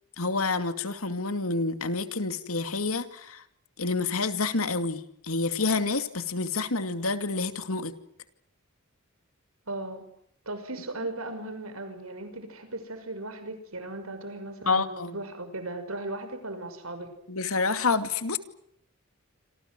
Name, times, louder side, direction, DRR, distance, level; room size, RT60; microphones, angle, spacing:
voice 1, 0.2-3.4 3.8-7.9 14.7-15.2 17.3-18.4, left 3 dB, 80° left, 9 dB, 2.5 m, -28 dB
voice 2, 9.7-10.1 10.5-17.1, right 2 dB, 85° right, 9 dB, 6.2 m, -37 dB
28.0 x 27.0 x 6.3 m, 0.69 s
head